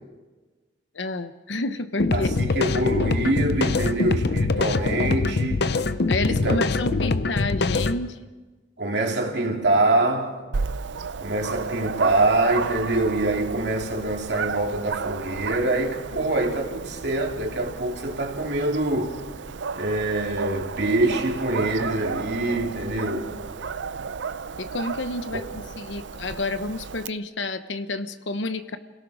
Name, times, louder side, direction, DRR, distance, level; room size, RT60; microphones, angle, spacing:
voice 1, 0.9-2.3 6.1-8.2 24.6-28.8, left 2 dB, 90° left, 1.1 m, -30 dB
sound 1, 2.0-8.0, left 3 dB, 65° left, 0.7 m, -23 dB
voice 2, 2.1-5.6 6.3-6.6 8.8-10.4 11.2-19.2 19.7-23.2 25.3-25.4, right 2 dB, 65° right, 3.0 m, -25 dB
Dog, 10.5-27.1, right 5 dB, 85° right, 0.5 m, -33 dB
30.0 x 17.5 x 4.9 m
head